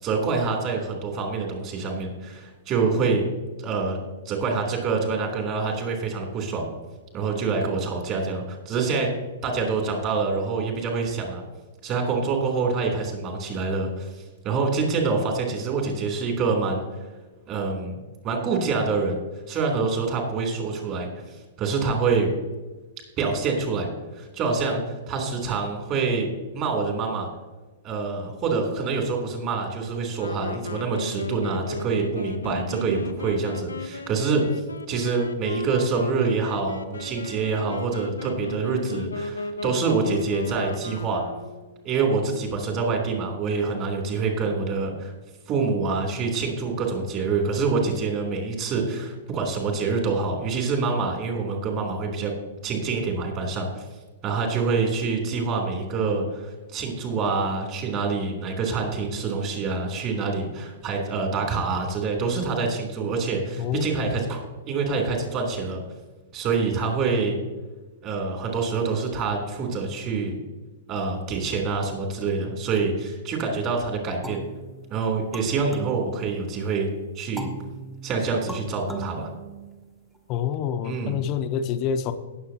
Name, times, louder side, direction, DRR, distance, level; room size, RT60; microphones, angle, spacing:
voice 1, 0.0-3.2 3.6-4.0 4.2-6.7 7.1-9.1 9.4-11.4 11.8-16.8 17.5-19.2 19.5-21.1 21.6-22.3 23.2-23.9 24.1-27.3 27.8-34.4 34.9-41.2 41.8-45.1 45.5-52.3 52.6-53.8 54.2-64.4 64.7-65.8 66.3-67.4 68.0-70.4 70.9-74.4 74.9-76.9 77.1-77.5 78.0-79.3 80.8-81.2, right 4 dB, 35° right, 2 dB, 3.2 m, -26 dB
Wind instrument woodwind instrument, 30.1-41.8, left 2 dB, 80° left, 0.6 m, -35 dB
voice 2, 63.6-64.2 80.3-82.1, left 8 dB, 40° left, 9 dB, 0.9 m, -27 dB
sound 1, 74.2-76.7 77.4-80.2, right 4 dB, 5° right, 1.1 m, -40 dB
18.5 x 7.1 x 2.9 m, 1.2 s
figure-of-eight pair, 110°, 0 cm